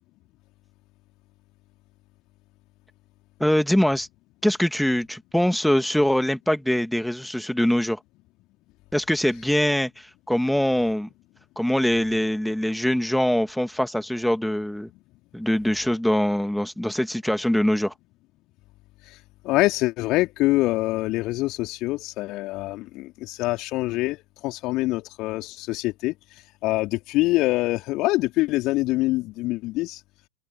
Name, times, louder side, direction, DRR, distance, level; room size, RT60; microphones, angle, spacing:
voice 1, 3.4-4.1 4.4-8.0 8.9-11.1 11.6-14.9 15.3-17.9, equal, ahead, 2.5 m, -23 dB
voice 2, 19.4-26.1 26.6-30.0, left 19 dB, 40° left, 3.7 m, -25 dB
open air
figure-of-eight pair, 90°, 0 cm